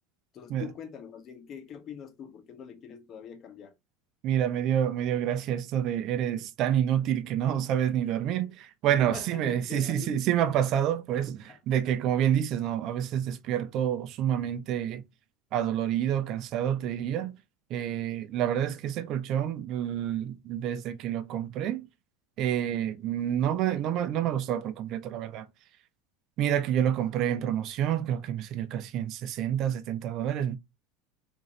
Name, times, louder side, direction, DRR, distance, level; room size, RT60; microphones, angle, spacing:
voice 1, 0.3-3.7 9.0-10.2 11.1-11.6, left 7 dB, 35° left, 0.8 m, -44 dB
voice 2, 4.2-15.0 15.5-17.4 17.7-21.9 22.4-25.5 26.4-30.6, right 10 dB, 50° right, 0.5 m, -28 dB
3.0 x 2.6 x 3.8 m
supercardioid pair, 130°, 0 cm